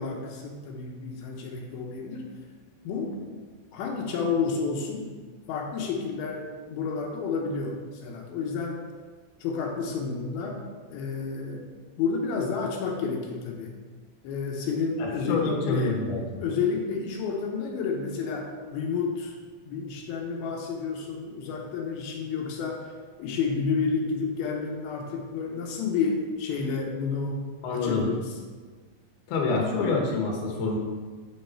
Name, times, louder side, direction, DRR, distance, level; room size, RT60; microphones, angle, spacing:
voice 1, 0.0-2.3 2.8-3.4 3.7-5.1 5.5-8.8 9.4-10.6 10.9-11.7 12.0-13.7 14.2-16.0 16.4-19.3 19.6-22.9 23.2-27.4 27.7-28.3, left 5 dB, 85° left, 0 dB, 2.7 m, -30 dB
voice 2, 15.0-16.4 27.6-28.1 29.3-30.8, left 3 dB, 65° left, 0 dB, 2.4 m, -27 dB
8.1 x 5.4 x 4.4 m, 1.4 s
omnidirectional pair, 4.3 m